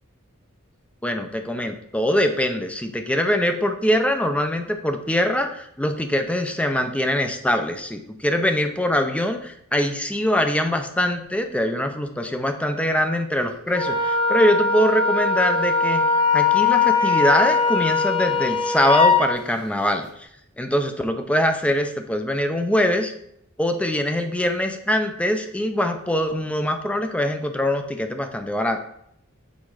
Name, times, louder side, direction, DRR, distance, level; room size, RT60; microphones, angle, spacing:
voice 1, 1.0-16.1 16.3-20.3 20.6-23.1 23.6-28.8, left 1 dB, 5° left, 6 dB, 0.4 m, -23 dB
Wind instrument woodwind instrument, 13.7-19.3, left 4 dB, 25° left, 1.0 m, -20 dB
6.3 x 3.7 x 4.7 m, 0.73 s
head